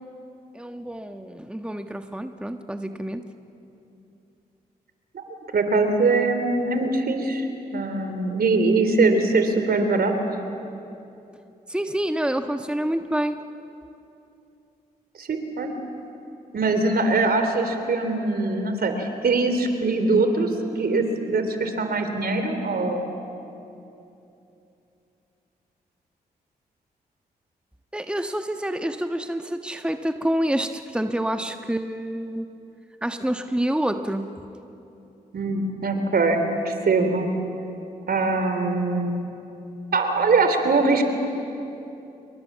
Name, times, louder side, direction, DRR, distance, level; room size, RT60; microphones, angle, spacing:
voice 1, 0.5-3.2 11.7-13.4 27.9-32.5 33.0-34.3, right 1 dB, 5° right, 7 dB, 1.3 m, -27 dB
voice 2, 5.5-7.5 7.7-10.1 15.2-15.7 16.5-20.5 20.8-23.0 35.3-37.3 38.1-39.2 39.9-41.0, right 3 dB, 60° right, 6 dB, 3.5 m, -22 dB
27.5 x 23.0 x 7.5 m, 2.8 s
supercardioid pair, 40°, 18 cm